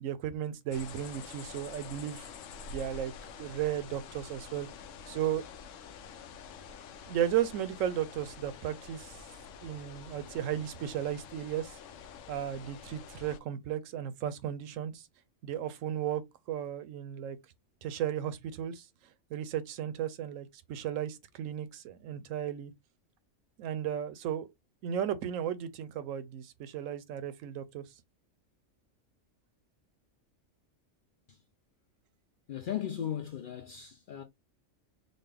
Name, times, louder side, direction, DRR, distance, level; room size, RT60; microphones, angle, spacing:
voice 1, 0.0-2.3 2.7-3.1 3.4-4.7 5.1-5.4 7.1-9.2 9.6-11.8 12.3-15.1 15.4-16.2 16.5-17.4 17.8-18.9 19.3-22.7 23.6-24.5 24.8-27.8, right 10 dB, 90° right, 1.0 m, -34 dB
sound 1, 0.7-13.4, left 6 dB, 80° left, 1.0 m, -47 dB
voice 2, 32.5-34.2, left 10 dB, 65° left, 0.5 m, -37 dB
4.0 x 2.2 x 3.3 m
omnidirectional pair, 1.3 m